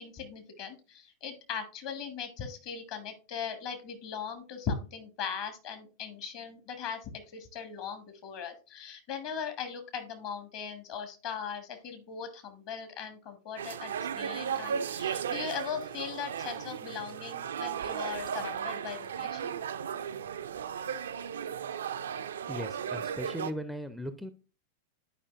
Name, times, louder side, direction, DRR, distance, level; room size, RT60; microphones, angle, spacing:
voice 1, 0.0-19.6, left 6 dB, 45° left, 7 dB, 1.4 m, -39 dB
sound 1, 13.6-23.5, right 8 dB, 65° right, 0.3 m, -35 dB
voice 2, 22.5-24.3, equal, ahead, 10 dB, 0.4 m, -38 dB
11.0 x 4.9 x 2.4 m, 0.33 s
figure-of-eight pair, 90°, 0 cm